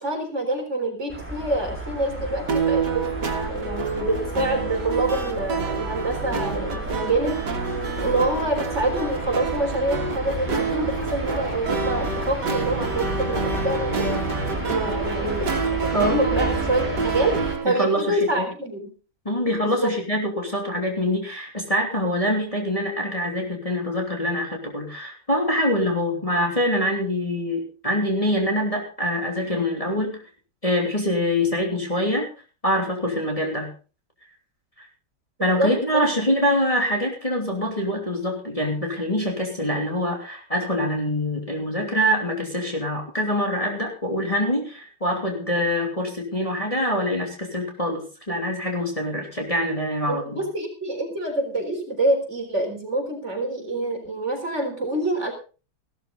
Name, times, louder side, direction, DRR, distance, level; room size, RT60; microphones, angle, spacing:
voice 1, 0.0-14.3 14.6-15.6 15.9-18.9 19.6-19.9 35.6-36.0 50.1-55.3, right 1 dB, 40° right, 2 dB, 4.2 m, -26 dB
sound 1, 1.1-17.6, right 1 dB, 5° right, 4.3 m, -32 dB
sound 2, 2.5-17.7, right 5 dB, 75° right, 2.5 m, -28 dB
voice 2, 15.9-16.3 17.6-18.5 19.2-30.2 30.6-32.3 32.6-33.7 34.8-34.9 35.4-50.4, equal, 20° left, 0 dB, 3.0 m, -24 dB
16.0 x 13.0 x 4.0 m, 0.36 s
omnidirectional pair, 1.8 m